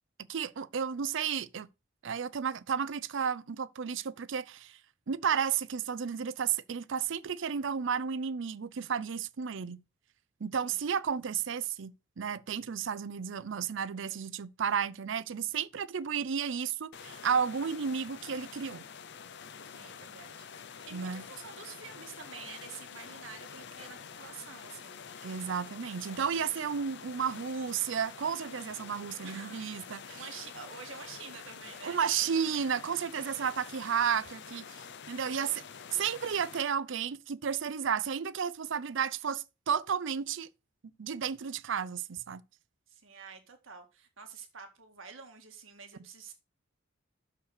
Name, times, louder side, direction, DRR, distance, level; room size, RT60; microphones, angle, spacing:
voice 1, 0.3-1.7 2.0-4.8 5.1-9.8 10.4-18.8 20.9-21.2 25.2-30.2 31.8-35.6 35.9-40.5 41.0-42.4, right 7 dB, 70° right, 0.5 m, -32 dB
sound 1, 16.9-36.6, left 6 dB, 60° left, 0.7 m, -47 dB
voice 2, 19.6-25.0 29.2-29.6 30.1-32.0 42.9-46.3, right 6 dB, 90° right, 1.9 m, -48 dB
6.6 x 5.4 x 6.5 m
head